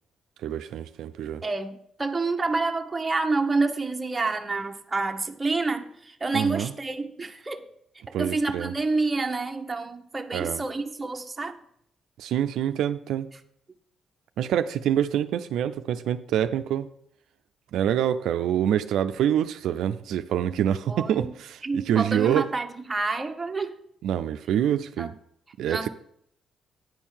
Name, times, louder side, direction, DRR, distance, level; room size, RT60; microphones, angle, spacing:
voice 1, 0.4-1.4 6.3-6.7 8.1-8.7 10.3-10.6 12.2-13.3 14.4-16.9 17.7-22.5 24.0-25.1 25.6-25.9, right 10 dB, 80° right, 9 dB, 0.4 m, -26 dB
voice 2, 1.4-7.7 8.1-11.6 20.9-21.3 21.6-23.8 25.0-25.1 25.7-25.9, right 3 dB, 20° right, 5 dB, 0.9 m, -28 dB
9.4 x 4.5 x 7.2 m, 0.72 s
cardioid pair, 90°, 0 cm